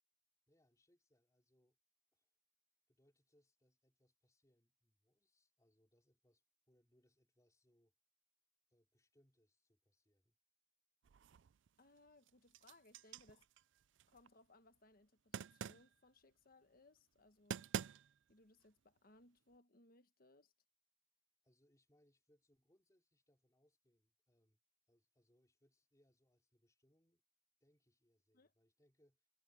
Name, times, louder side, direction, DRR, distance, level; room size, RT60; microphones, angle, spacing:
voice 1, 0.5-1.8 2.1-2.3 2.9-7.9 8.7-10.4 21.4-24.6 24.9-27.2 27.6-29.3, equal, 20° left, 3.7 m, -78 dB
sound 1, 11.0-11.7 12.1-14.3 15.3-15.9 17.2-17.3 17.5-18.3, right 7 dB, 85° right, 0.4 m, -47 dB
voice 2, 11.8-13.4 14.1-17.7 18.3-20.5 28.3-28.5, left 2 dB, 50° left, 1.4 m, -67 dB
head